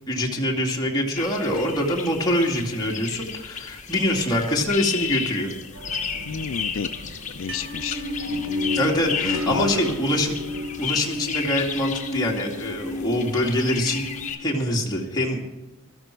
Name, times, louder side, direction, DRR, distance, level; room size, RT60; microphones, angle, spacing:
voice 1, 0.1-5.5 8.7-10.4 10.8-14.0 14.4-15.4, left 1 dB, 20° left, -2 dB, 2.2 m, -24 dB
sound 1, 1.2-14.4, left 7 dB, 40° left, 1.2 m, -33 dB
sound 2, 5.7-10.9, equal, 80° right, 1.0 m, -38 dB
voice 2, 6.3-6.9 7.3-8.9 9.2-9.7, left 6 dB, 75° left, 11 dB, 0.4 m, -32 dB
Musical instrument, 7.4-14.3, left 2 dB, 30° right, 4.3 m, -32 dB
16.0 x 13.5 x 4.5 m, 1.1 s
head